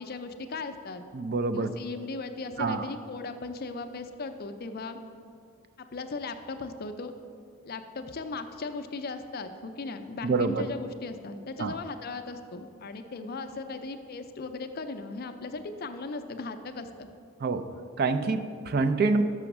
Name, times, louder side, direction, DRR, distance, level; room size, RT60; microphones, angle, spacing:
voice 1, 0.0-1.0 1.5-5.0 5.8-7.1 7.6-17.1, left 3 dB, 45° left, 8 dB, 0.4 m, -37 dB
voice 2, 1.1-1.7 2.6-2.9 10.2-10.6 11.6-11.8 17.4-17.7 18.0-19.2, right 3 dB, 45° right, 10 dB, 0.4 m, -26 dB
6.3 x 6.0 x 5.9 m, 2.3 s
head